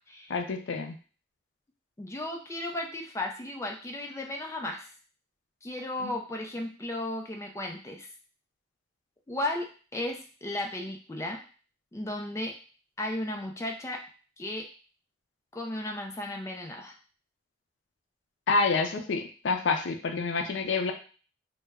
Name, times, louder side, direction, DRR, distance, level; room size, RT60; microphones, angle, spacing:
voice 1, 0.3-1.0 6.0-6.1 18.5-20.9, left 4 dB, 85° left, 5 dB, 0.4 m, -28 dB
voice 2, 2.0-4.9 5.6-8.1 9.3-9.7 9.9-11.4 11.9-12.5 13.0-14.0 14.4-14.7 15.5-16.9, left 1 dB, 15° left, 1 dB, 0.3 m, -34 dB
2.2 x 2.0 x 3.4 m, 0.39 s
head